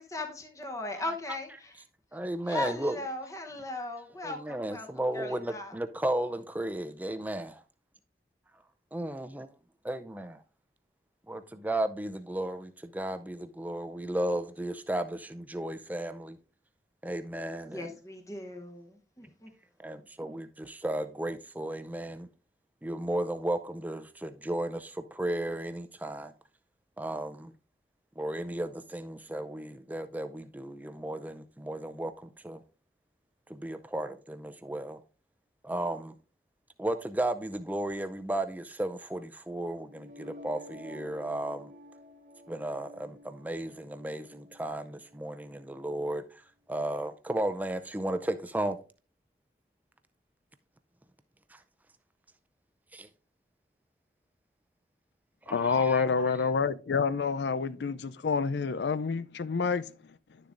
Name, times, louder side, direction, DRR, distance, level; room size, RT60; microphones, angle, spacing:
voice 1, 0.0-1.7 2.5-4.9 5.1-5.7 17.7-19.5, left 2 dB, 20° left, 0.9 m, -38 dB
voice 2, 2.1-3.0 4.2-7.5 8.9-9.5 9.8-10.4 11.3-16.4 17.0-17.9 19.8-22.3 22.8-26.3 27.0-27.5 28.2-32.6 33.5-35.0 35.6-36.1 36.8-41.7 42.5-48.8 51.5-51.6 52.9-53.1 55.5-56.4, right 1 dB, 10° right, 0.5 m, -34 dB
sound 1, 39.8-45.8, left 1 dB, 45° right, 0.8 m, -51 dB
voice 3, 55.5-59.9, left 5 dB, 80° left, 0.5 m, -28 dB
11.0 x 6.9 x 2.5 m
head